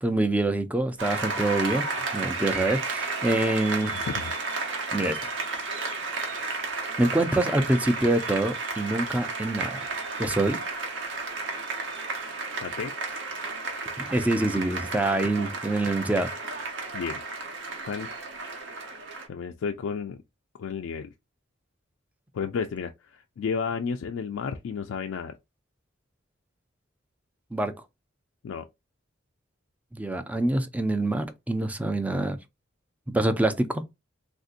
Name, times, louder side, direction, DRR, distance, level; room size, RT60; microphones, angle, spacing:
voice 1, 0.0-1.9 2.1-3.9 4.9-5.2 6.3-6.5 7.0-9.8 10.2-10.6 14.0-16.3 27.5-27.7 29.9-32.4 33.1-33.8, right 2 dB, 10° right, 0.4 m, -25 dB
Applause, 1.0-19.3, right 3 dB, 65° right, 0.9 m, -33 dB
voice 2, 3.8-4.3 12.6-12.9 15.4-15.5 16.9-17.2 17.9-18.1 19.3-20.2 20.6-21.1 22.3-25.3 28.4-28.7, left 6 dB, 90° left, 0.4 m, -32 dB
3.5 x 2.6 x 2.4 m
head